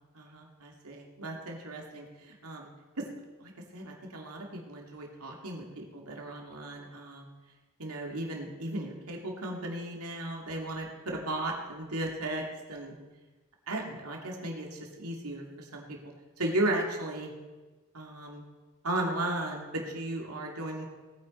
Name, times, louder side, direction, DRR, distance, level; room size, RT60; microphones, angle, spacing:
voice 1, 0.1-2.7 3.0-3.1 3.4-7.2 7.8-12.4 12.7-12.9 13.7-16.0 16.4-17.3 17.9-18.4 18.8-20.9, right 1 dB, 80° right, 0 dB, 2.8 m, -35 dB
19.0 x 9.6 x 4.7 m, 1.2 s
head